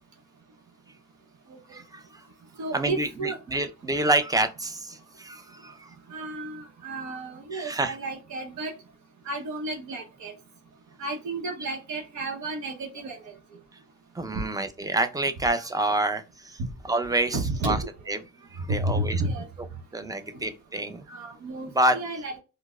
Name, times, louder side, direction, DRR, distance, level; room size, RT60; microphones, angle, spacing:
voice 1, 1.7-2.0 2.7-5.9 7.5-8.0 14.1-18.2 18.5-19.2 19.6-19.7 19.9-21.0 21.7-22.0, right 2 dB, 10° right, 0.5 m, -28 dB
voice 2, 2.6-3.4 6.1-8.7 9.2-10.3 11.0-13.3 16.6-16.7 17.3-17.9 18.7-19.5 21.1-22.4, right 2 dB, 70° right, 0.8 m, -32 dB
4.5 x 2.0 x 2.2 m
cardioid pair, 90°, 30 cm